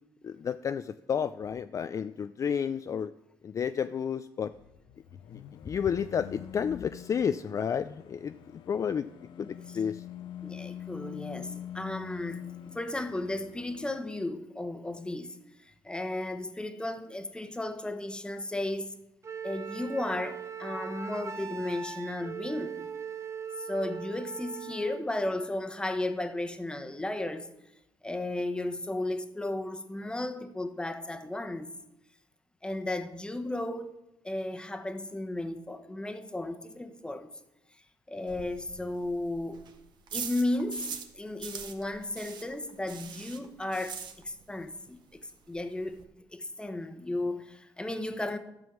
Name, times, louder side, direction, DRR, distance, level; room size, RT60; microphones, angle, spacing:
voice 1, 0.2-3.1 3.4-4.5 5.3-9.1 9.4-10.0, left 7 dB, 40° left, 0.4 m, -31 dB
sound 1, 4.5-14.0, left 10 dB, 75° left, 0.7 m, -44 dB
voice 2, 10.4-18.9 19.4-22.9 23.6-27.5 28.0-31.7 32.6-34.0 34.2-37.3 38.1-39.6 40.1-40.9 41.1-46.0 46.3-48.4, left 1 dB, 10° left, 1.1 m, -34 dB
Wind instrument woodwind instrument, 19.2-25.1, right 7 dB, 35° right, 0.9 m, -40 dB
sound 2, 38.3-41.1 41.4-44.6 44.9-45.0 45.3-45.4 45.6-46.0, right 7 dB, 60° right, 1.3 m, -42 dB
12.5 x 5.4 x 7.3 m
cardioid pair, 90°, 8 cm